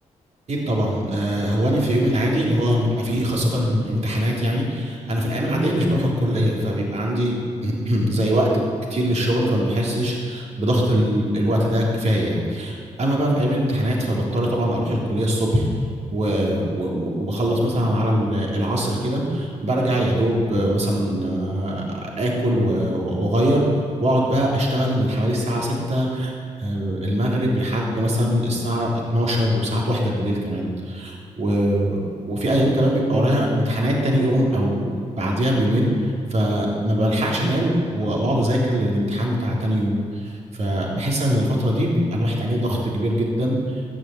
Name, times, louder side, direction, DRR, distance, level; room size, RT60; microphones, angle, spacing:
voice 1, 0.5-8.6 8.9-15.6 16.1-32.0 32.3-43.8, equal, 60° right, -3 dB, 3.5 m, -22 dB
14.5 x 6.5 x 8.5 m, 2.3 s
cardioid pair, 85°, 13 cm